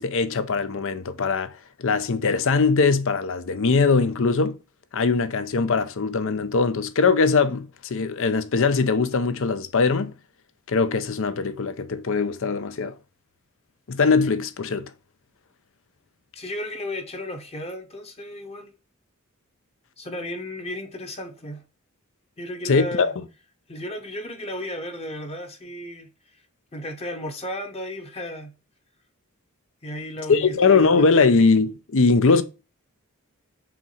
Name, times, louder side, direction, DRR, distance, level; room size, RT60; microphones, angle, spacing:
voice 1, 0.0-1.5 1.8-4.6 4.9-10.2 10.7-13.0 13.9-14.9 22.6-23.1 30.3-32.4, left 4 dB, 60° left, 0.6 m, -21 dB
voice 2, 16.3-18.7 20.0-21.6 22.4-23.1 23.7-26.4 26.7-28.5 29.8-31.2, left 1 dB, 30° left, 1.0 m, -34 dB
4.6 x 3.7 x 5.4 m
head